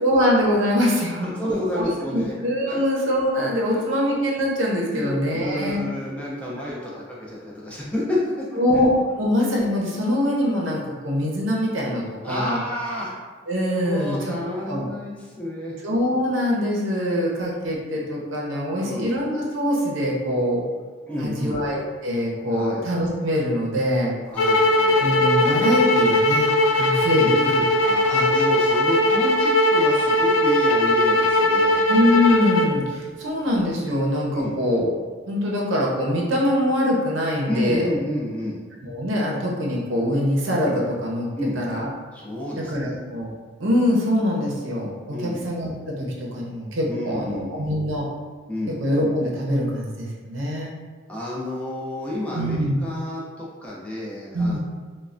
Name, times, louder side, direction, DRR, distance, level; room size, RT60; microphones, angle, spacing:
voice 1, 0.0-1.3 1.8-1.9 2.1-5.8 6.8-6.9 8.6-8.9 9.2-12.6 13.5-14.3 14.7-14.8 15.8-20.6 21.2-24.2 24.9-26.5 26.8-27.6 28.1-28.2 31.9-34.9 35.3-37.9 38.8-41.3 41.6-41.9 42.7-43.3 43.6-48.1 48.8-50.7 52.3-52.8 54.3-54.6, equal, 80° right, -3 dB, 0.6 m, -23 dB
voice 2, 1.2-2.3 2.7-2.8 3.7-3.8 4.9-8.4 12.2-13.1 13.8-15.8 18.8-19.1 21.1-21.6 22.5-22.8 24.3-25.1 27.1-31.9 34.3-34.5 37.5-38.6 41.4-41.6 42.1-43.0 45.1-45.4 46.9-47.8 48.5-48.7 51.1-54.6, left 1 dB, 5° left, -6 dB, 0.4 m, -30 dB
sound 1, 24.4-32.7, left 1 dB, 85° left, 0.3 m, -19 dB
3.1 x 2.1 x 2.5 m, 1.4 s
head